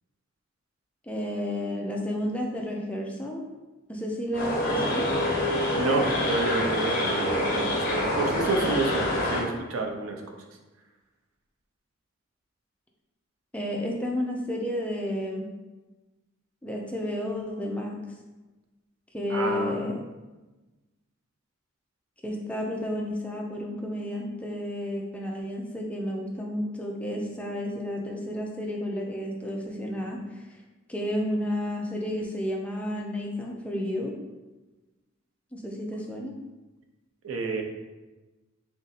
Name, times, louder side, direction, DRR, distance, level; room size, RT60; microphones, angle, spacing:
voice 1, 1.0-3.4 3.9-5.1 13.5-15.5 16.6-18.0 19.1-20.0 22.2-30.6 30.9-34.1 35.5-36.3, left 1 dB, 5° left, -1 dB, 0.4 m, -31 dB
sound 1, 4.3-9.4, left 1 dB, 45° left, 0.8 m, -26 dB
voice 2, 5.7-10.3 19.3-19.9 37.2-37.6, right 3 dB, 85° right, 3 dB, 0.6 m, -29 dB
3.5 x 2.6 x 4.0 m, 1.2 s
head